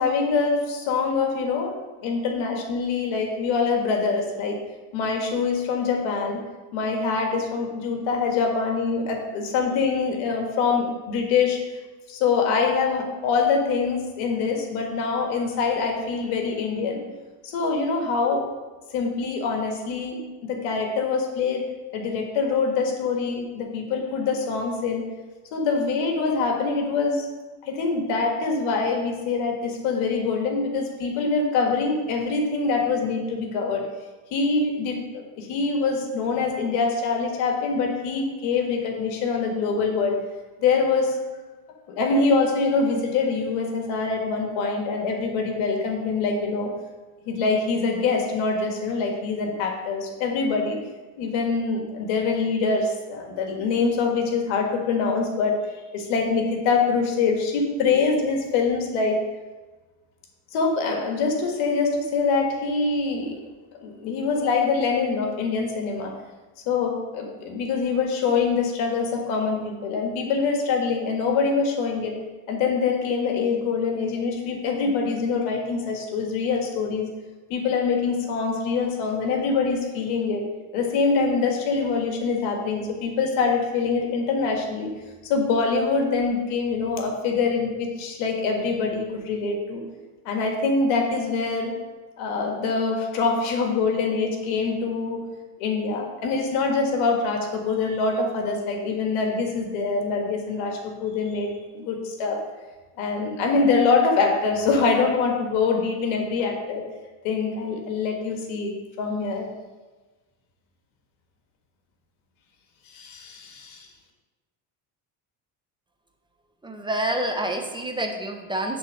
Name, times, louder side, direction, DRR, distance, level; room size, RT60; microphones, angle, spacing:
voice 1, 0.0-1.7 2.0-4.6 4.9-6.4 6.7-11.6 12.1-17.0 17.4-18.4 18.9-25.0 25.5-27.3 27.6-33.8 34.3-40.2 40.6-41.2 41.9-46.7 47.2-50.8 51.2-55.5 55.9-59.2 60.5-63.4 63.8-66.1 66.6-72.2 72.5-77.1 77.5-80.4 80.7-84.9 85.2-89.8 90.2-91.7 92.2-95.2 95.6-102.4 103.0-106.8 107.2-109.5 112.9-113.9, left 4 dB, 75° left, 2 dB, 1.7 m, -24 dB
voice 2, 116.6-118.8, right 1 dB, 10° right, 3 dB, 0.9 m, -28 dB
7.4 x 3.7 x 6.3 m, 1.2 s
supercardioid pair, 110°, 49 cm